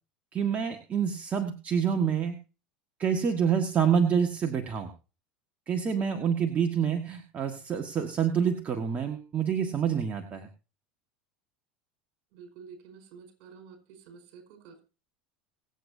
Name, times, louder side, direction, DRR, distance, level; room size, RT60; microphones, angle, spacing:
voice 1, 0.3-2.3 3.0-4.9 5.7-10.5, right 7 dB, 35° right, 4 dB, 1.6 m, -27 dB
voice 2, 12.3-14.8, right 6 dB, 60° right, 5 dB, 4.9 m, -50 dB
25.0 x 8.3 x 2.7 m, 0.33 s
hypercardioid pair, 85°, 5 cm